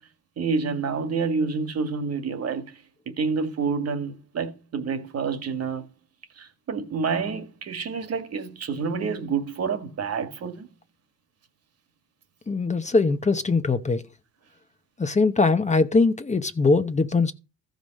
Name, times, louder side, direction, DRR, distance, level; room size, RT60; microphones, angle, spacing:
voice 1, 0.4-2.7 3.1-5.9 6.4-10.7, right 5 dB, 55° right, 1.8 m, -28 dB
voice 2, 12.5-14.0 15.0-17.3, left 3 dB, 25° left, 0.9 m, -21 dB
14.0 x 5.2 x 6.4 m
cardioid pair, 90°, 30 cm